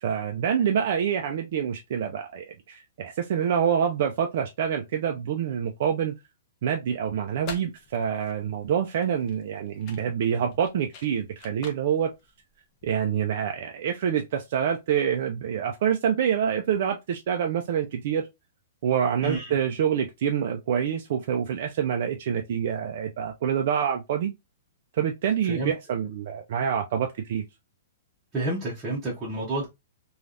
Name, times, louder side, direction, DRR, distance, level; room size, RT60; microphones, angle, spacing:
voice 1, 0.0-6.2 6.6-12.1 12.8-18.3 18.8-24.3 24.9-27.4, right 8 dB, 55° right, 0.4 m, -26 dB
sound 1, 7.2-13.2, left 4 dB, 30° left, 0.8 m, -46 dB
voice 2, 19.2-19.5 25.5-25.7 28.3-29.7, right 2 dB, 15° right, 0.9 m, -29 dB
3.2 x 2.3 x 2.5 m
hypercardioid pair, 155°, 0 cm